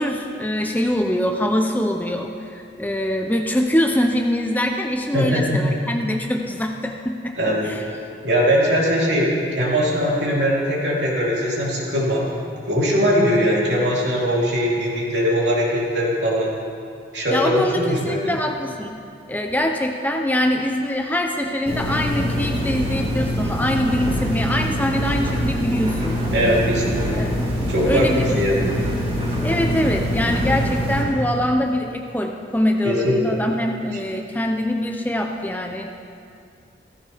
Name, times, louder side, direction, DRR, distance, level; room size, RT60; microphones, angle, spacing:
voice 1, 0.0-7.4 7.6-7.8 17.3-19.0 19.3-26.2 27.2-27.4 27.8-28.4 29.4-36.0, left 1 dB, 10° left, 3 dB, 0.6 m, -23 dB
voice 2, 5.1-5.7 7.4-7.7 8.2-16.5 17.1-18.3 26.3-27.2 27.7-28.7 32.8-33.4, equal, 70° right, -5 dB, 3.4 m, -21 dB
sound 1, 21.7-31.0, equal, 35° right, 3.6 m, -24 dB
16.5 x 15.0 x 3.5 m, 2.4 s
head